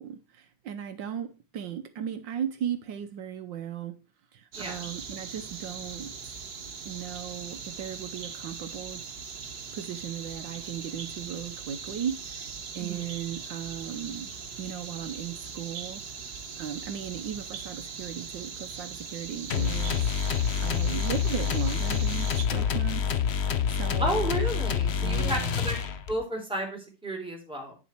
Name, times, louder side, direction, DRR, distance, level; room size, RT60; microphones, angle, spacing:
voice 1, 0.0-4.0 4.3-6.4 6.8-9.0 9.7-14.3 14.6-16.0 16.6-24.3 25.0-25.7, right 9 dB, 75° right, 1.5 m, -37 dB
sound 1, 4.5-22.5, right 5 dB, 60° right, 1.8 m, -40 dB
sound 2, 19.5-26.2, left 7 dB, 55° left, 0.7 m, -27 dB
voice 2, 24.0-25.8 26.1-27.8, right 1 dB, 5° right, 3.3 m, -32 dB
10.0 x 7.1 x 4.5 m
omnidirectional pair, 2.0 m